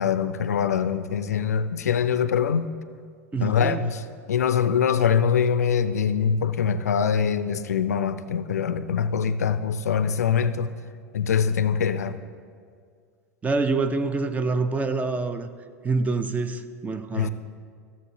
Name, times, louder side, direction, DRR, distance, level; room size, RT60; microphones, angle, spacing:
voice 1, 0.0-2.7 3.4-4.0 4.3-10.7 11.1-12.2 17.1-17.3, left 7 dB, 75° left, 0.4 m, -23 dB
voice 2, 3.3-3.8 13.4-15.5 15.8-17.3, right 3 dB, 15° right, 0.5 m, -26 dB
13.5 x 6.9 x 2.8 m
figure-of-eight pair, 85°, 9 cm